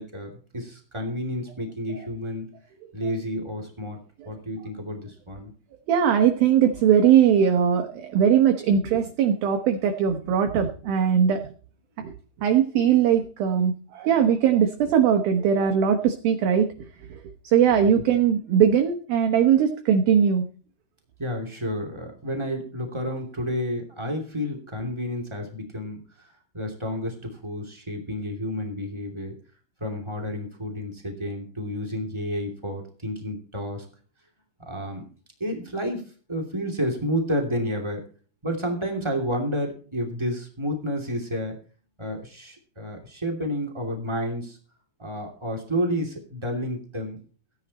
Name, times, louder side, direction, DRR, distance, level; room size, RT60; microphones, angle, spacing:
voice 1, 0.0-2.5 2.9-4.0 4.2-5.5 17.9-18.0 21.2-26.0 26.5-29.3 29.8-33.8 34.6-35.0 35.4-36.0 36.3-38.0 38.4-41.5 42.0-44.6 45.0-47.2, equal, 25° right, 1 dB, 0.6 m, -30 dB
voice 2, 5.9-11.4 12.0-12.1 12.4-16.7 17.4-20.4, right 8 dB, 70° right, 5 dB, 2.3 m, -20 dB
16.0 x 10.5 x 4.2 m, 0.40 s
omnidirectional pair, 5.8 m